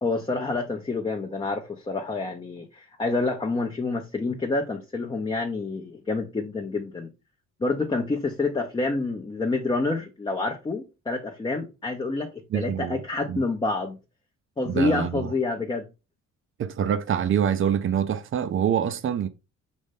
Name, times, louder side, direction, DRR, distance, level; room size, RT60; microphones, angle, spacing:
voice 1, 0.0-7.1 7.6-14.0 14.6-15.9, left 3 dB, 15° left, 0.6 m, -28 dB
voice 2, 12.5-13.0 13.3-13.4 14.6-15.3 16.6-19.3, right 8 dB, 45° right, 0.5 m, -25 dB
5.2 x 2.6 x 3.6 m
cardioid pair, 90°, 30 cm